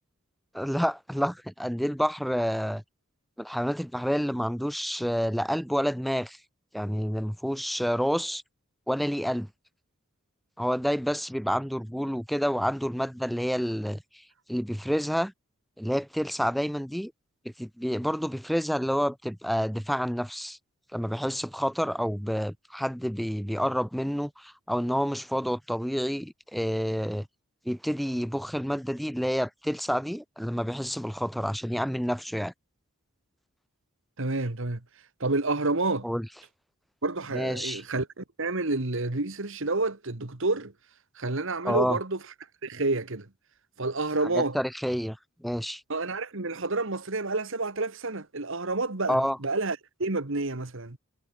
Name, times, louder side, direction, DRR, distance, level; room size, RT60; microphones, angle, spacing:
voice 1, 0.5-2.8 3.4-6.4 6.7-8.4 8.9-9.5 10.6-14.0 14.5-15.3 15.8-17.1 17.6-20.6 20.9-27.3 27.7-32.5 36.0-36.3 37.3-37.8 41.6-42.0 44.3-45.2 45.4-45.8 49.1-49.4, equal, ahead, 1.9 m, -29 dB
voice 2, 34.2-34.8 35.2-36.1 37.0-40.7 41.2-42.2 42.6-43.3 43.8-44.6 45.9-51.0, right 2 dB, 60° right, 1.7 m, -29 dB
head